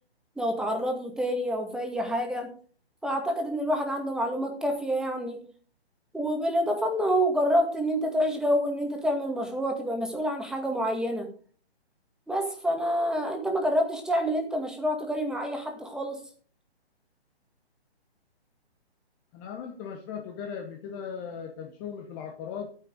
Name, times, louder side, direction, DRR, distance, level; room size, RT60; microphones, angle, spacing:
voice 1, 0.4-2.5 3.0-5.5 6.1-11.3 12.3-16.2, equal, ahead, 3 dB, 2.0 m, -27 dB
voice 2, 19.3-22.7, left 7 dB, 20° left, 4 dB, 1.2 m, -38 dB
14.0 x 9.7 x 4.9 m, 0.43 s
figure-of-eight pair, 140°, 32 cm